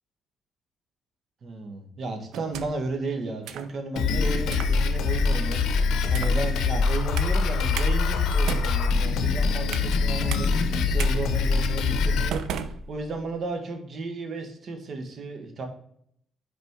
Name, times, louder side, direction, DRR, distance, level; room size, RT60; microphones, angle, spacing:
voice 1, 1.4-5.6 6.1-15.7, right 3 dB, 50° right, 5 dB, 1.6 m, -34 dB
sound 1, 2.3-2.9 3.5-3.7 4.4-4.8 5.3-5.6 6.1-6.5 7.2-7.4 7.8-7.9 8.3-10.0 10.3-10.5 11.0-11.1 11.6-11.8 12.3-13.4, right 6 dB, 85° right, 0.6 m, -35 dB
Drum kit, 4.0-12.3, left 4 dB, 75° left, 0.8 m, -24 dB
5.9 x 4.9 x 4.6 m, 0.69 s
cardioid pair, 90°, 0 cm